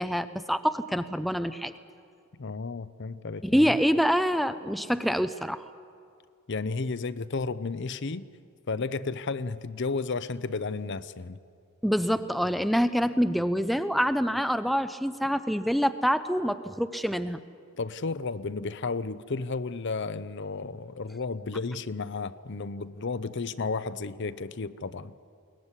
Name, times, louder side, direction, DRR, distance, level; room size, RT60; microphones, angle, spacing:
voice 1, 0.0-1.7 3.4-5.6 11.8-17.4, equal, ahead, 11 dB, 0.5 m, -26 dB
voice 2, 2.4-3.8 6.5-8.3 8.7-11.4 17.8-25.1, left 4 dB, 55° left, 14 dB, 0.7 m, -33 dB
22.0 x 19.0 x 9.9 m, 2.4 s
head